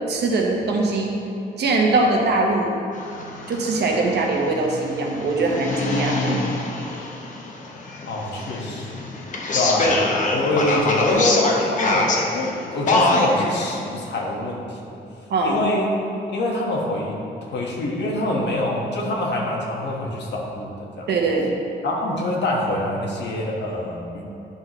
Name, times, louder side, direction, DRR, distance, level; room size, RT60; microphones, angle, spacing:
voice 1, 0.1-1.2 1.6-2.8 3.5-6.4 15.3-15.6 21.1-21.5, right 3 dB, 70° right, 0 dB, 1.1 m, -21 dB
sound 1, 2.9-13.7, left 2 dB, 45° left, 0.8 m, -24 dB
voice 2, 8.1-9.1 9.5-10.0 10.3-14.8 15.4-15.9 16.3-21.1 21.8-24.2, left 1 dB, 75° left, -1 dB, 1.4 m, -25 dB
10.5 x 5.9 x 3.0 m, 2.7 s
wide cardioid pair, 175°, 18 cm